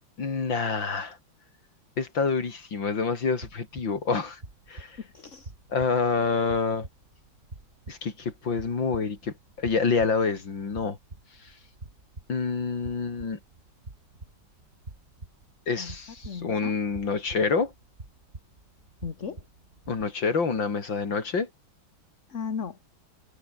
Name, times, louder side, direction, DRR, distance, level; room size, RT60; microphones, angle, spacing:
voice 1, 0.2-1.2 2.0-4.4 4.7-5.0 5.7-6.9 7.9-11.0 12.3-13.4 15.7-17.7 19.9-21.5, left 4 dB, 65° left, 3.8 m, -27 dB
sound 1, 3.4-20.0, right 2 dB, 30° right, 3.5 m, -47 dB
voice 2, 5.0-5.5 15.8-16.0 16.2-16.8 19.0-19.5 22.3-22.8, left 6 dB, 40° left, 1.8 m, -36 dB
omnidirectional pair, 2.3 m